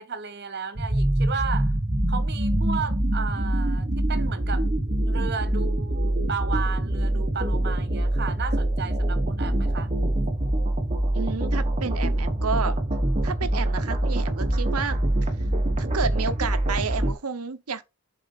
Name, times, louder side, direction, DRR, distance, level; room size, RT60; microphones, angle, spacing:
voice 1, 0.0-1.7 2.1-4.7 5.0-9.9, right 6 dB, 50° right, 1.0 m, -34 dB
sound 1, 0.8-17.1, right 1 dB, 30° right, 1.3 m, -24 dB
voice 2, 11.1-12.8 13.2-15.0 15.8-17.8, right 5 dB, 90° right, 0.8 m, -30 dB
7.4 x 4.1 x 4.0 m
head